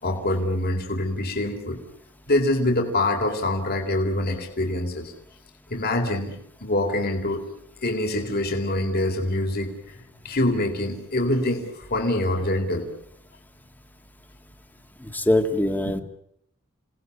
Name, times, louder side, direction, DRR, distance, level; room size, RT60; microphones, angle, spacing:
voice 1, 0.0-1.8 2.3-5.1 5.7-6.3 6.6-7.4 7.8-12.9 15.8-15.9, left 1 dB, 50° left, 3 dB, 3.7 m, -25 dB
voice 2, 15.0-16.0, left 1 dB, 10° left, 6 dB, 2.0 m, -23 dB
29.5 x 18.5 x 8.4 m, 0.77 s
head